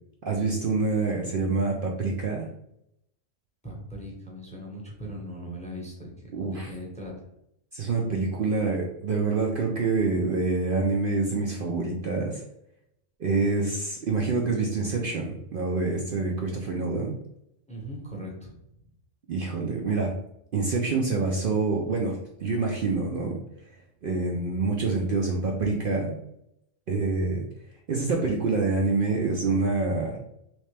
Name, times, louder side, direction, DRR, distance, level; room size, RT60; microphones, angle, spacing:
voice 1, 0.2-2.5 6.3-6.7 7.7-12.4 13.2-17.1 19.3-20.1 20.5-23.4 24.0-26.2 26.9-27.4 27.9-30.2, right 3 dB, 60° right, -1 dB, 0.6 m, -26 dB
voice 2, 3.6-6.1 6.4-7.3 17.7-18.5, equal, 5° left, -2 dB, 0.7 m, -39 dB
3.2 x 3.0 x 3.2 m, 0.79 s
omnidirectional pair, 1.4 m